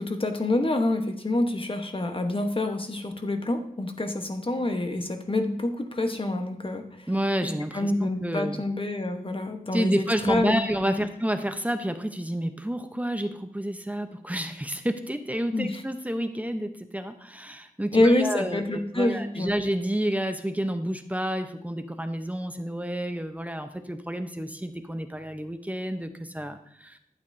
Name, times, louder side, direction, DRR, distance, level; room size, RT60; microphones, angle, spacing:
voice 1, 0.0-7.1 7.4-10.6 10.8-11.0 15.5-15.8 17.9-19.6, left 1 dB, 35° left, 6 dB, 1.1 m, -27 dB
voice 2, 7.1-8.6 9.7-27.0, equal, 10° right, 7 dB, 0.8 m, -30 dB
11.5 x 8.8 x 2.7 m, 0.66 s
wide cardioid pair, 80°, 15 cm